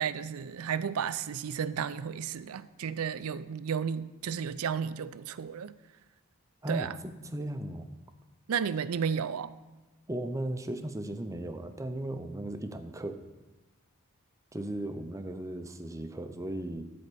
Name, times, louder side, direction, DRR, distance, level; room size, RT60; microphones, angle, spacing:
voice 1, 0.0-5.7 6.7-7.0 8.5-9.5, right 7 dB, 75° right, 0.4 m, -33 dB
voice 2, 6.6-7.9 10.1-13.2 14.5-16.8, right 1 dB, 15° right, 0.5 m, -36 dB
12.5 x 4.3 x 6.8 m
head